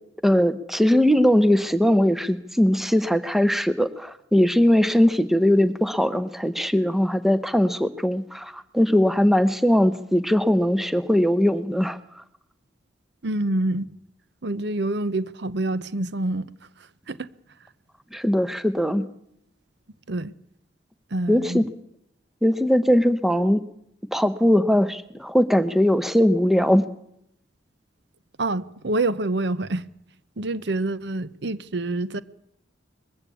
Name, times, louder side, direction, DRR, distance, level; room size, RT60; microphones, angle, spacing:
voice 1, 0.2-12.2 18.1-19.1 21.3-21.6 22.4-23.6 24.1-26.9, equal, ahead, 0.8 m, -20 dB
voice 2, 13.2-13.8 14.4-16.5 16.8-17.3 20.1-20.3 21.1-21.6 28.4-29.9 30.4-32.2, right 2 dB, 60° right, 0.8 m, -27 dB
21.5 x 15.5 x 8.5 m
head